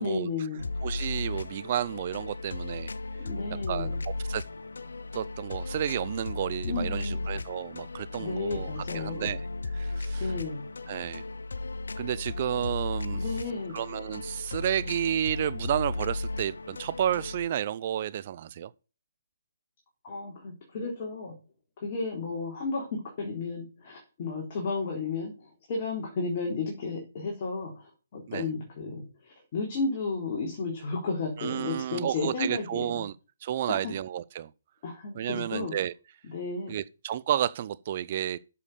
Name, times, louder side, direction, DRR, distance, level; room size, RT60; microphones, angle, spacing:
voice 1, 0.0-0.6 3.2-4.0 6.6-7.3 8.1-9.4 10.2-10.7 13.1-13.8 20.0-21.3 21.8-33.0 33.7-33.9 34.8-35.8 36.2-36.8, left 3 dB, 40° left, 3.6 m, -33 dB
sound 1, 0.6-17.5, left 2 dB, 85° left, 0.8 m, -35 dB
voice 2, 0.8-2.9 3.7-3.9 4.3-4.4 5.1-9.4 9.7-10.3 10.9-11.2 12.0-13.2 13.7-18.7 28.3-28.5 31.4-33.1 33.4-34.5 35.2-35.9 36.7-38.4, right 10 dB, 40° right, 0.6 m, -31 dB
8.4 x 6.9 x 6.7 m
hypercardioid pair, 150°, 0 cm